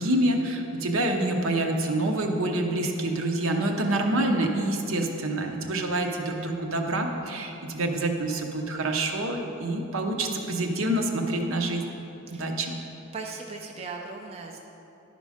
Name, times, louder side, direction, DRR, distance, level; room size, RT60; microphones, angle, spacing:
voice 1, 0.0-11.8 12.3-12.7, right 1 dB, 70° right, 3 dB, 0.9 m, -27 dB
voice 2, 13.1-14.6, right 4 dB, 30° right, 0 dB, 0.5 m, -38 dB
11.5 x 5.2 x 5.0 m, 2.9 s
head